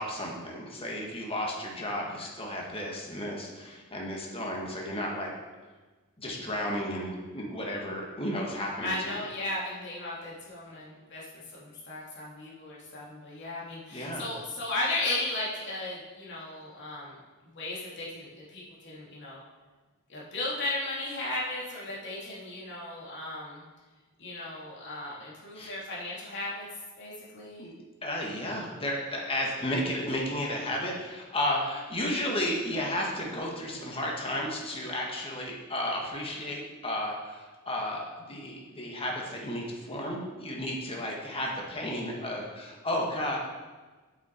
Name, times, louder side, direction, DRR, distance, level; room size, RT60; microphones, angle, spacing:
voice 1, 0.0-5.3 6.2-9.2 13.9-14.3 25.5-25.7 27.6-27.7 28.0-43.4, left 1 dB, 25° left, -1 dB, 1.7 m, -33 dB
voice 2, 8.8-17.2 17.5-19.4 20.1-23.6 24.2-26.7 27.0-27.7, left 2 dB, 55° left, -5 dB, 2.6 m, -35 dB
8.6 x 7.9 x 4.5 m, 1.3 s
head